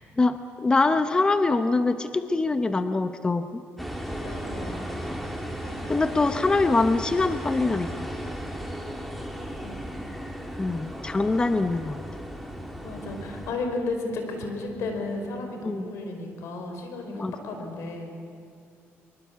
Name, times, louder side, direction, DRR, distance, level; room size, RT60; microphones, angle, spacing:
voice 1, 0.2-3.6 5.9-8.1 10.6-12.0 15.6-15.8 17.1-17.3, left 3 dB, 20° left, 9 dB, 0.8 m, -24 dB
sound 1, 3.8-13.5, equal, ahead, 2.5 m, -35 dB
voice 2, 4.2-5.2 5.6-6.0 9.3-9.8 12.8-18.1, left 2 dB, 80° left, 4 dB, 5.0 m, -34 dB
24.5 x 23.0 x 8.5 m, 2.3 s
cardioid pair, 130°, 5 cm